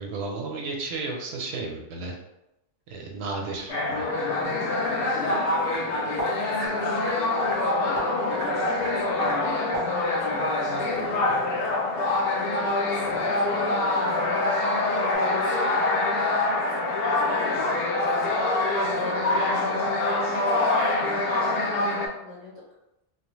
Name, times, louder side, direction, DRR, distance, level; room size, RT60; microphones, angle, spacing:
voice 1, 0.0-2.2 2.9-4.1, right 3 dB, 70° right, 1 dB, 0.8 m, -33 dB
sound 1, 3.7-22.1, left 2 dB, 65° left, 0.7 m, -25 dB
sound 2, 4.4-9.9, right 1 dB, 20° right, 0.6 m, -38 dB
voice 2, 5.1-11.7 12.3-15.7 16.6-18.4 18.9-19.9 20.2-22.6, left 1 dB, 30° left, -6 dB, 0.7 m, -41 dB
sound 3, 6.7-15.2, left 4 dB, 90° left, 1.0 m, -38 dB
2.7 x 2.1 x 3.0 m, 0.90 s
omnidirectional pair, 1.2 m